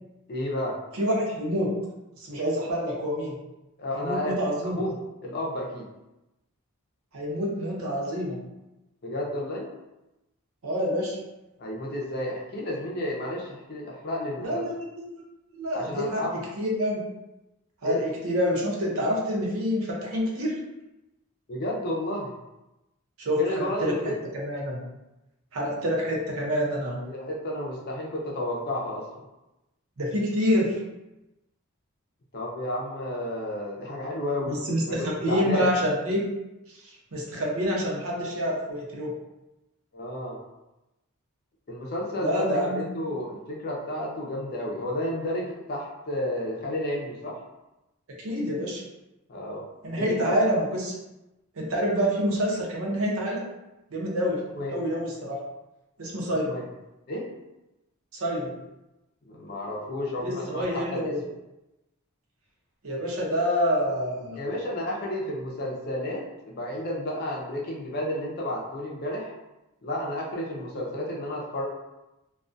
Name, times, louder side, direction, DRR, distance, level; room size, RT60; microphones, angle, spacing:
voice 1, 0.3-0.8 3.8-4.3 4.6-5.9 9.0-9.7 11.6-14.7 15.7-16.4 17.8-18.1 21.5-22.3 23.3-24.2 27.0-29.1 32.3-34.6 35.2-35.7 39.9-40.4 41.7-47.4 49.3-49.6 49.9-50.3 54.5-54.8 56.3-56.6 57.1-57.3 59.2-61.1 64.4-69.3 69.8-71.7, left 1 dB, 45° left, -2 dB, 0.5 m, -31 dB
voice 2, 0.9-1.8 2.2-3.4 3.9-4.8 7.1-8.4 10.6-11.2 14.4-14.7 15.5-16.2 16.6-17.0 17.8-20.6 23.2-23.9 24.3-24.8 25.5-27.0 30.0-30.8 34.5-36.2 36.7-36.8 37.1-39.1 42.2-42.9 48.2-48.8 49.8-50.9 51.6-53.4 53.9-54.4 54.7-55.4 56.0-56.5 58.1-58.5 60.2-61.2 62.8-64.4 70.7-70.8, equal, 70° right, -2 dB, 0.7 m, -27 dB
2.3 x 2.2 x 2.5 m, 0.97 s
head